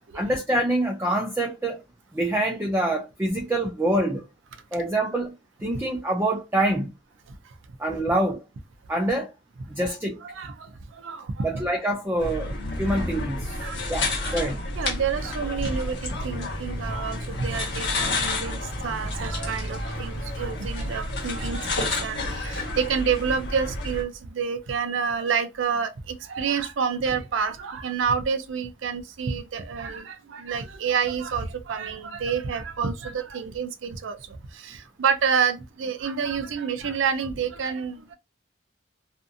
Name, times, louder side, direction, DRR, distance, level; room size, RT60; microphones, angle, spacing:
voice 1, 0.1-1.8 2.1-4.2 4.7-5.4 5.6-6.9 7.8-8.4 8.9-9.3 9.7-10.2 11.4-13.6 13.9-14.6, right 1 dB, 10° right, 0.4 m, -25 dB
voice 2, 10.3-11.5 13.5-38.1, right 6 dB, 80° right, 0.5 m, -29 dB
sound 1, 12.2-24.0, left 2 dB, 65° left, 1.1 m, -30 dB
2.6 x 2.5 x 2.5 m
head